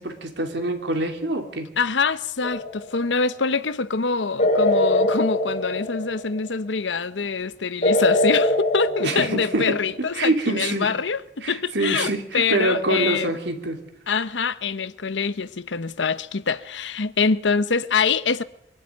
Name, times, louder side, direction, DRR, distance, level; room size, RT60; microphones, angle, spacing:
voice 1, 0.0-1.7 9.0-10.9 11.4-13.8, right 2 dB, 70° right, 2.9 m, -25 dB
voice 2, 1.8-13.3 14.1-18.4, left 5 dB, 85° left, 0.9 m, -25 dB
sound 1, 2.4-3.0 4.4-6.5 7.8-9.9, left 1 dB, 40° left, 3.9 m, -22 dB
23.0 x 12.0 x 9.4 m
head